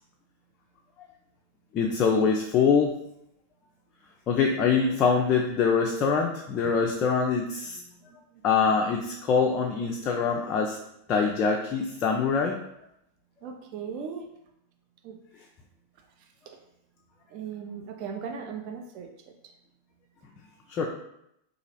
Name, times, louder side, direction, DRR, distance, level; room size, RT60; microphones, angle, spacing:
voice 1, 1.7-2.9 4.3-7.8 8.4-10.8 11.1-12.6 20.7-20.9, left 5 dB, 35° left, 0 dB, 0.3 m, -24 dB
voice 2, 13.4-14.3 15.0-15.2 16.5-16.6 17.3-19.1, right 6 dB, 45° right, 4 dB, 0.4 m, -37 dB
2.8 x 2.4 x 2.8 m, 0.78 s
figure-of-eight pair, 90°, 0 cm